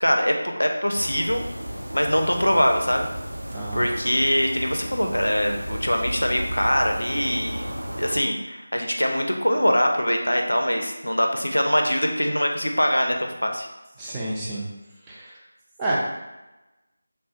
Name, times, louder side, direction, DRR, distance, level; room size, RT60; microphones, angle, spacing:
voice 1, 0.0-1.4 1.9-3.1 3.7-7.7 8.0-13.7, equal, 80° left, 3 dB, 0.4 m, -23 dB
sound 1, 1.0-8.2, equal, 80° right, 0.4 m, -33 dB
voice 2, 3.5-3.9 14.0-14.7 15.1-15.4 15.8-16.0, right 2 dB, 10° right, -6 dB, 0.3 m, -29 dB
3.2 x 2.1 x 2.8 m, 1.0 s
figure-of-eight pair, 165°, 0 cm